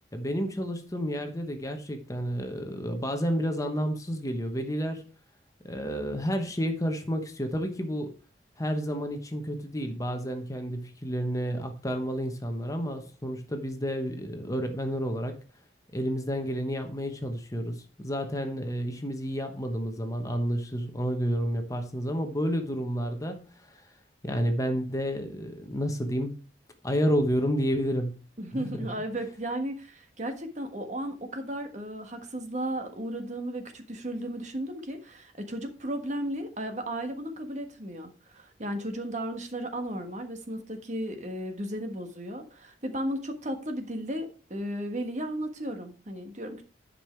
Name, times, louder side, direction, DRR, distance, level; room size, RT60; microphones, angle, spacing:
voice 1, 0.1-5.0 5.6-8.2 8.6-15.4 15.9-23.8 24.2-26.4 26.8-28.3 28.5-28.9, equal, 20° left, 1.1 m, -30 dB
voice 2, 28.4-46.6, right 1 dB, 40° right, 1.5 m, -35 dB
11.0 x 5.5 x 4.5 m
head